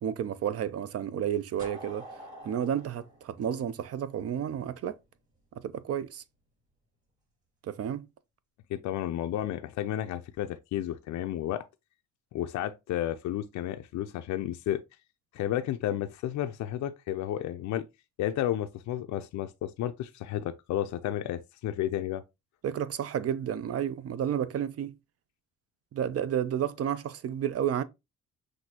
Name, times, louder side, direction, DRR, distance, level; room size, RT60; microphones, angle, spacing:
voice 1, 0.0-2.0 2.4-4.9 5.6-6.2 7.6-8.0 22.6-24.9 25.9-27.8, right 9 dB, 50° right, 0.5 m, -31 dB
sound 1, 1.6-4.4, right 1 dB, 25° right, 3.0 m, -46 dB
voice 2, 8.7-11.6 12.3-14.8 15.3-17.8 18.2-22.2, left 12 dB, 70° left, 0.5 m, -32 dB
5.9 x 2.6 x 2.8 m
cardioid pair, 90°, 30 cm